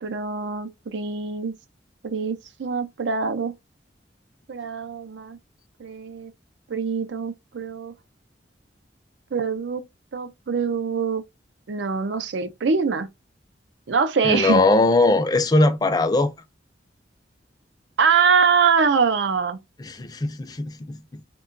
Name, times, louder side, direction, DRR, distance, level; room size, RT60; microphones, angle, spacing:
voice 1, 0.0-1.5 2.0-3.5 4.5-5.4 5.8-6.3 6.7-7.9 9.3-9.8 10.1-11.2 11.7-13.1 13.9-14.6 18.0-19.6, right 5 dB, 85° right, 0.5 m, -23 dB
voice 2, 14.2-16.3 19.8-21.2, left 2 dB, 20° left, 0.4 m, -20 dB
3.7 x 2.2 x 2.5 m
head